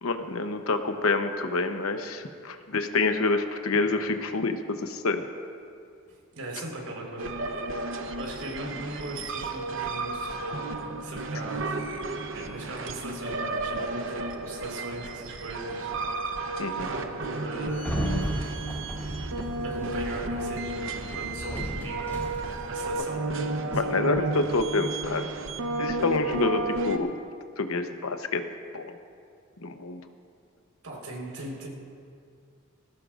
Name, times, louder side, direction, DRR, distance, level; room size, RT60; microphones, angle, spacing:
voice 1, 0.0-5.2 16.6-16.9 23.7-25.3 25.8-27.1 27.6-28.5 28.7-28.9 29.6-30.0, left 3 dB, 80° left, 7 dB, 0.9 m, -27 dB
voice 2, 6.1-7.3 8.2-10.6 11.0-11.8 12.3-15.9 16.8-18.0 19.6-22.2 22.7-23.2 23.7-24.5 30.8-31.7, right 1 dB, 90° right, -2 dB, 4.4 m, -39 dB
sound 1, 7.2-27.0, right 2 dB, 60° right, 0.9 m, -32 dB
Sliding door, 17.7-22.9, equal, 10° left, 2.1 m, -35 dB
20.5 x 17.5 x 2.5 m, 2.3 s
head